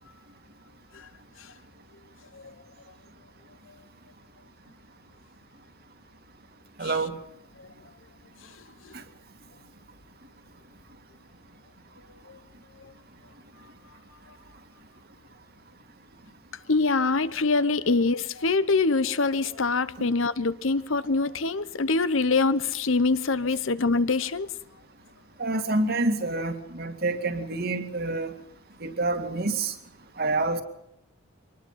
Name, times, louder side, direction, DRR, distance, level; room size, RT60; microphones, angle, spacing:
voice 1, 6.8-7.1 8.9-9.0 25.4-28.3 28.8-29.7 30.2-30.6, right 2 dB, 50° right, 2.2 m, -27 dB
voice 2, 16.7-24.5, left 3 dB, 70° left, 0.9 m, -24 dB
24.5 x 20.0 x 5.8 m
head